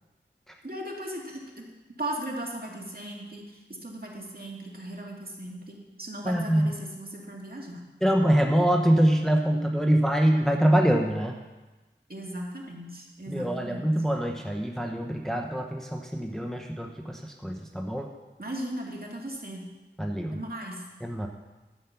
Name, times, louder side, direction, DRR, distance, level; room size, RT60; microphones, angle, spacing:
voice 1, 0.6-1.6 2.0-7.8 12.1-13.9 18.4-19.6 20.3-20.8, right 1 dB, 50° right, -1 dB, 2.3 m, -37 dB
voice 2, 6.2-6.7 8.0-11.4 13.3-18.1 20.0-20.4 21.0-21.3, right 1 dB, ahead, 2 dB, 0.9 m, -24 dB
11.5 x 8.4 x 5.8 m, 1.2 s
wide cardioid pair, 40°, 20 cm